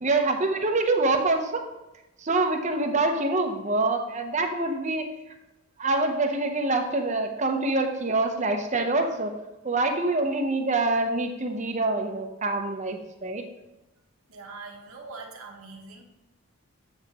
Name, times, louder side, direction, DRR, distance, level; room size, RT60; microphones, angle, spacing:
voice 1, 0.0-1.6 2.2-5.0 5.8-9.4 9.6-13.4, right 2 dB, 30° right, 4 dB, 0.7 m, -25 dB
voice 2, 14.3-16.0, right 3 dB, 70° right, 0 dB, 1.1 m, -42 dB
7.8 x 7.1 x 2.9 m, 0.96 s
head